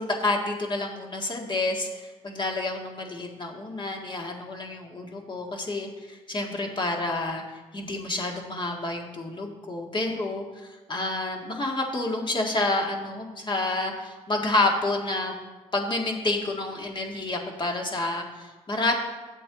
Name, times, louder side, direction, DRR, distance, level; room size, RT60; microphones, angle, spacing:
voice 1, 0.0-7.4 7.7-15.4 15.7-18.9, left 2 dB, 35° left, 1 dB, 1.8 m, -29 dB
10.0 x 7.7 x 3.9 m, 1.2 s
supercardioid pair, 60°, 13 cm